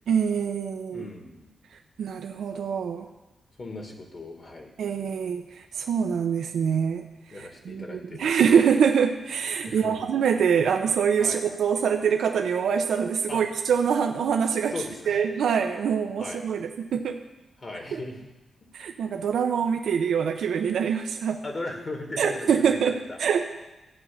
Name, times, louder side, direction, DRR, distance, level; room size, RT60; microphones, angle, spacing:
voice 1, 0.1-1.0 2.0-3.1 4.8-7.0 7.3-14.7 15.1-17.2 17.9-18.0 18.7-21.4 22.2-23.4, right 7 dB, 85° right, 4 dB, 0.8 m, -24 dB
voice 2, 0.9-1.5 3.6-4.7 7.3-8.5 9.7-10.1 11.2-11.4 13.3-13.4 14.7-15.2 16.2-16.4 17.6-18.2 21.4-23.2, left 2 dB, 35° left, 2 dB, 2.2 m, -37 dB
14.5 x 5.5 x 8.7 m, 1.0 s
wide cardioid pair, 140°, 0 cm